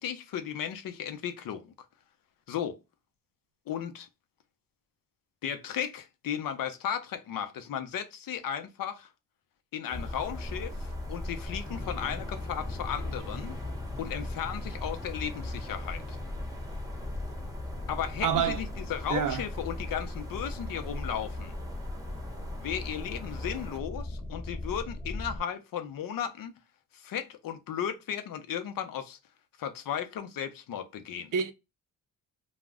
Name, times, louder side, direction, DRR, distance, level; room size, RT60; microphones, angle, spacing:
voice 1, 0.0-1.7 2.5-2.8 3.7-4.1 5.4-9.1 9.7-13.6 14.0-16.2 17.9-21.5 22.6-26.5 26.9-29.2 29.6-31.3, left 9 dB, 65° left, 0.6 m, -35 dB
sound 1, 9.9-25.4, left 2 dB, 10° left, 0.4 m, -37 dB
sound 2, 9.9-23.8, right 1 dB, 10° right, 0.8 m, -48 dB
voice 2, 18.2-18.6 19.1-19.4 31.3-31.5, right 8 dB, 60° right, 0.6 m, -27 dB
2.3 x 2.1 x 3.4 m
cardioid pair, 75°, 36 cm